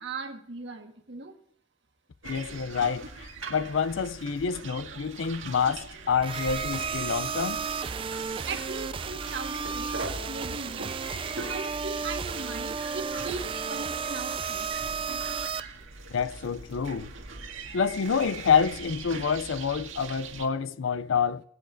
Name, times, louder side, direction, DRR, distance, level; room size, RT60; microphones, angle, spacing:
voice 1, 0.0-1.3 8.5-10.9 11.5-14.7, right 4 dB, 65° right, 1.7 m, -38 dB
voice 2, 2.2-7.7 16.1-17.1 17.7-21.4, left 6 dB, 80° left, 0.5 m, -27 dB
sound 1, 2.2-20.5, right 3 dB, 85° right, 1.8 m, -41 dB
sound 2, 6.2-15.6, right 6 dB, 25° right, 0.3 m, -33 dB
21.0 x 9.0 x 2.6 m
head